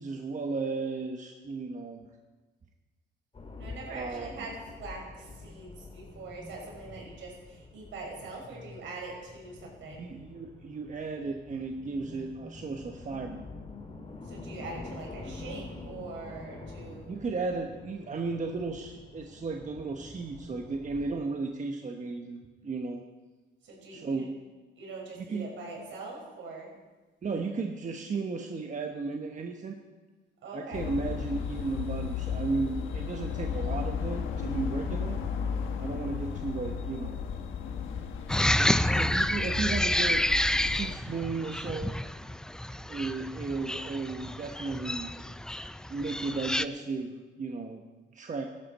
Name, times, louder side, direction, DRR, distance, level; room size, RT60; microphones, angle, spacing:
voice 1, 0.0-2.1 3.9-4.5 10.0-13.4 17.1-23.0 23.9-24.4 25.2-25.5 27.2-29.8 30.5-35.2 35.8-37.2 38.6-40.2 40.7-41.9 42.9-45.1 45.9-47.8 48.1-48.5, right 4 dB, 40° right, 3 dB, 1.2 m, -34 dB
sound 1, 3.3-21.2, left 3 dB, 30° left, 2.3 m, -46 dB
voice 2, 3.6-10.0 14.2-17.1 23.6-24.3 24.8-26.7 30.4-30.8, right 3 dB, 75° right, -2 dB, 5.8 m, -43 dB
sound 2, 30.7-40.9, left 6 dB, 80° left, 1.3 m, -34 dB
sound 3, 38.3-46.6, left 1 dB, 5° left, 0.4 m, -29 dB
16.5 x 12.0 x 4.3 m, 1.3 s
cardioid pair, 90°, 20 cm